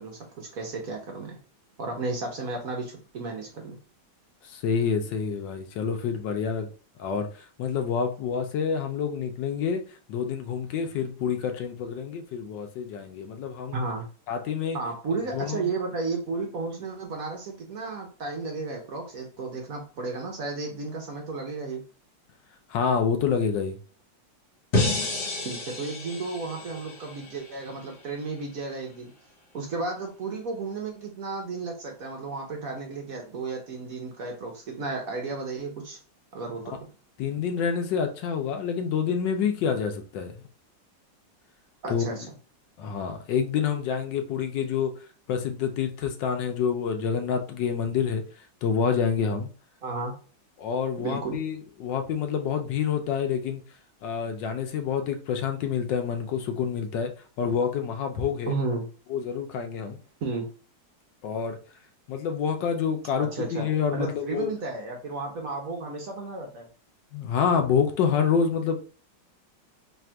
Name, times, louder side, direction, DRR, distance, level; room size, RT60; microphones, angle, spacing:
voice 1, 0.0-1.4 1.8-3.8 13.7-14.1 14.7-21.8 25.4-29.1 29.5-36.0 36.3-36.6 41.8-42.3 49.8-50.1 51.0-51.4 58.5-58.9 60.2-60.5 63.2-66.7, right 3 dB, 55° right, 1.1 m, -33 dB
voice 2, 4.4-6.7 7.0-9.8 10.1-13.8 14.3-14.8 15.3-15.7 22.7-23.8 36.7-36.8 37.2-40.3 41.9-42.2 42.8-44.9 45.3-48.2 48.6-49.5 50.6-53.6 54.0-57.1 57.4-58.5 59.1-60.0 61.2-61.6 62.1-64.5 67.1-68.8, left 6 dB, 75° left, 1.3 m, -27 dB
sound 1, 24.7-27.9, left 2 dB, 60° left, 1.5 m, -30 dB
3.4 x 2.4 x 4.3 m
omnidirectional pair, 2.1 m